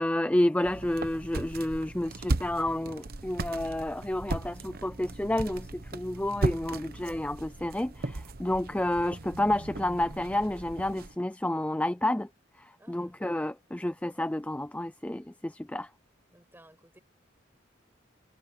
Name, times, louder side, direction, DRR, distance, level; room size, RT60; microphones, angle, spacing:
voice 1, 0.0-12.3 12.6-15.9, left 1 dB, 5° left, 0.4 m, -30 dB
sound 1, 0.6-11.1, right 2 dB, 50° right, 1.0 m, -37 dB
voice 2, 12.8-13.2 16.3-17.0, right 1 dB, 10° right, 6.7 m, -57 dB
head